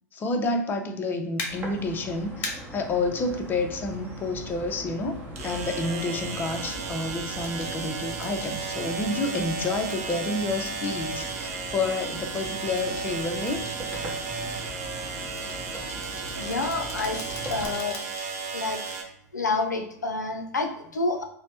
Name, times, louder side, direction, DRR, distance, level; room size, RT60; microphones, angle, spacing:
voice 1, 0.1-13.7, left 2 dB, 20° left, 4 dB, 0.4 m, -29 dB
sound 1, 1.4-1.5 2.4-2.5 4.5-4.6 7.4-7.7 8.2-8.5 9.9-10.2 10.7-11.0 12.8-13.1 13.5-13.8 15.4-18.3 18.7-18.8, left 3 dB, 45° left, 0.7 m, -39 dB
sound 2, 1.5-17.7, right 1 dB, 20° right, 0.8 m, -41 dB
sound 3, 3.3-3.4 5.4-19.0, right 4 dB, 60° right, 0.6 m, -34 dB
voice 2, 16.4-18.0 18.5-18.8 19.3-21.2, left 3 dB, 85° left, 4 dB, 0.4 m, -29 dB
3.0 x 2.0 x 2.8 m, 0.70 s
figure-of-eight pair, 90°, 9 cm